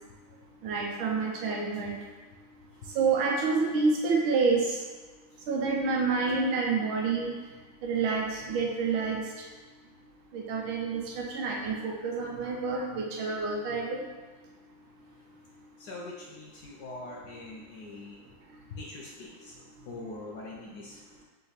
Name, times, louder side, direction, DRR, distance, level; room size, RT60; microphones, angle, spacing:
voice 1, 0.6-2.0 2.9-4.8 5.5-7.3 7.8-9.2 10.3-14.0, right 4 dB, 90° right, -1 dB, 1.6 m, -28 dB
voice 2, 15.8-18.2 18.7-19.5 19.9-21.0, left 2 dB, 70° left, -3 dB, 1.0 m, -43 dB
4.0 x 3.3 x 4.0 m, 1.3 s
omnidirectional pair, 2.2 m